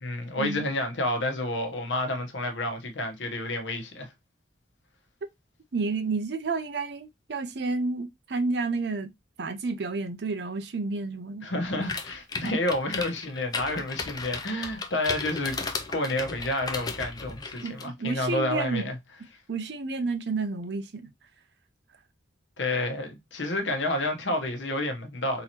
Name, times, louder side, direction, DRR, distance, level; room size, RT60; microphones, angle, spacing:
voice 1, 0.0-4.1 11.4-15.6 15.9-19.0 22.6-25.4, left 1 dB, 80° left, 1.0 m, -29 dB
voice 2, 5.7-9.1 9.4-11.5 12.4-12.6 17.6-18.9 19.5-21.1, right 3 dB, 60° right, 0.6 m, -30 dB
sound 1, 11.8-17.8, left 4 dB, 20° left, 0.4 m, -35 dB
3.8 x 2.9 x 2.9 m
head